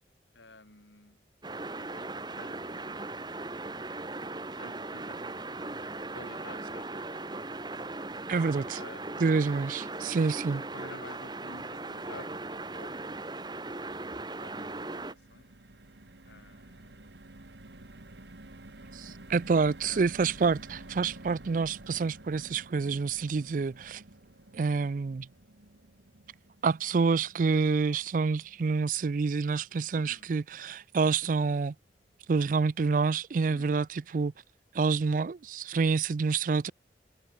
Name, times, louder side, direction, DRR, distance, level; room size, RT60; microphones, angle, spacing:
voice 1, 0.3-1.2 1.8-3.0 4.6-7.5 8.7-9.7 10.5-13.3 14.4-15.5 16.3-17.2 19.9-20.1 29.9-30.3 33.5-33.7, left 2 dB, 85° left, 5.8 m, -51 dB
sound 1, 1.4-15.1, right 2 dB, 25° right, 2.1 m, -38 dB
voice 2, 8.3-8.8 9.2-10.6 18.9-24.0 24.5-25.3 26.6-31.7 32.3-34.3 34.7-36.7, right 4 dB, 45° right, 0.4 m, -27 dB
sound 2, 14.3-30.4 30.8-30.9 31.2-31.4, right 2 dB, 75° right, 1.8 m, -51 dB
head